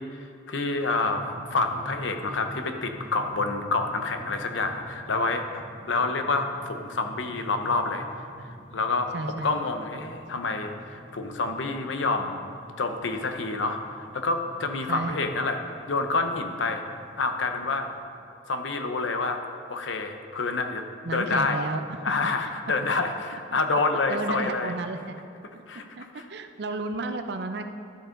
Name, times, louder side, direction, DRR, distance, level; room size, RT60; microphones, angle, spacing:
voice 1, 0.0-9.1 9.4-12.4 12.8-16.8 17.2-17.9 18.5-19.4 19.7-20.8 21.1-21.6 22.0-24.7 25.7-25.8 26.2-26.3, left 3 dB, 85° left, 6 dB, 0.8 m, -28 dB
sound 1, 1.0-18.0, right 1 dB, 25° right, 1.7 m, -46 dB
voice 2, 9.1-9.6 14.9-15.3 21.0-22.0 23.5-23.6 24.1-25.2 25.5-25.6 26.0-27.7, right 2 dB, 60° right, 8 dB, 0.6 m, -32 dB
12.5 x 6.9 x 3.8 m, 2.5 s
head